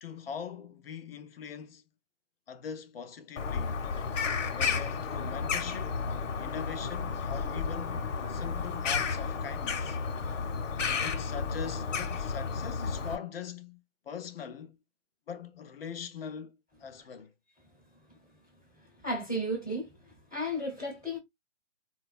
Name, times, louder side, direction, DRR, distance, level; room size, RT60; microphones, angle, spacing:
voice 1, 0.0-1.8 2.5-3.8 4.5-6.0 6.4-10.0 10.9-14.8 15.3-17.3, left 7 dB, 50° left, 0.5 m, -42 dB
Bird vocalization bird call bird song, 3.4-13.2, left 5 dB, 70° left, 0.8 m, -32 dB
voice 2, 19.0-21.2, equal, 5° right, 0.4 m, -34 dB
4.0 x 2.3 x 2.3 m
hypercardioid pair, 155°, 39 cm